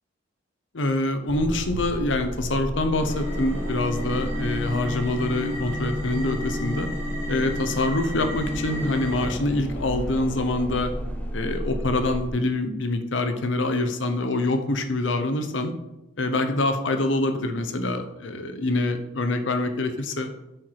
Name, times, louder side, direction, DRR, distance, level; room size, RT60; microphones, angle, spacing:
voice 1, 0.7-6.9 7.3-10.9 11.3-15.7 16.2-20.3, left 2 dB, 80° left, 7 dB, 0.9 m, -25 dB
sound 1, 1.3-12.3, equal, 10° left, 0.7 m, -33 dB
sound 2, 3.1-9.3, left 1 dB, 85° right, 1.9 m, -32 dB
7.7 x 4.6 x 4.9 m, 0.93 s
head